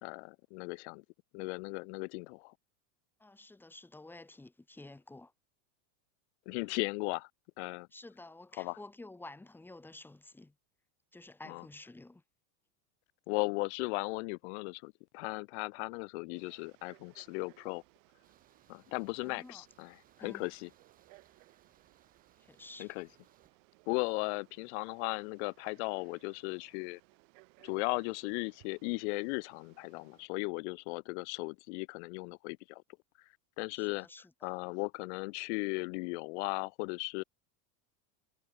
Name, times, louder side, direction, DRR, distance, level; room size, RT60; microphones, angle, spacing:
voice 1, 0.0-1.0 1.3-2.5 6.5-7.3 7.6-7.9 8.6-8.8 11.5-11.6 13.3-17.8 18.7-20.7 22.8-23.1 23.9-27.0 27.6-32.8 33.6-34.1 34.4-37.2, left 29 dB, 50° left, 0.8 m, -37 dB
voice 2, 3.2-5.3 7.9-10.5 11.1-12.2 19.2-19.6 20.2-20.4 22.4-22.9 33.8-34.3, left 2 dB, 5° left, 2.5 m, -51 dB
Frog, 16.3-30.3, right 36 dB, 50° right, 4.1 m, -64 dB
sound 1, 18.2-23.5, right 8 dB, 20° right, 4.0 m, -69 dB
supercardioid pair, 170°, 46 cm